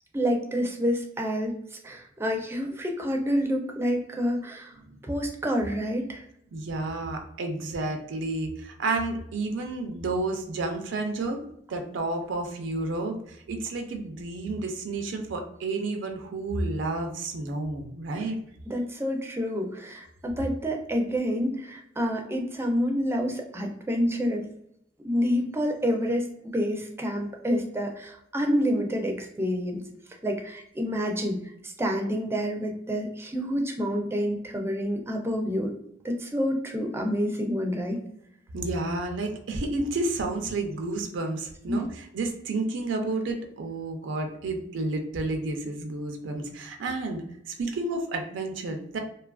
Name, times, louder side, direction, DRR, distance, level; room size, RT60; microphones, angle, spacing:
voice 1, 0.1-1.5 1.8-4.7 5.0-6.2 18.7-24.4 25.0-26.2 26.5-29.8 30.2-31.4 31.6-35.7 36.0-38.0 41.7-41.8, equal, 15° right, 2 dB, 0.4 m, -28 dB
voice 2, 6.5-11.4 11.7-18.4 38.5-49.0, right 2 dB, 85° right, 4 dB, 0.4 m, -31 dB
2.6 x 2.3 x 2.2 m, 0.73 s
head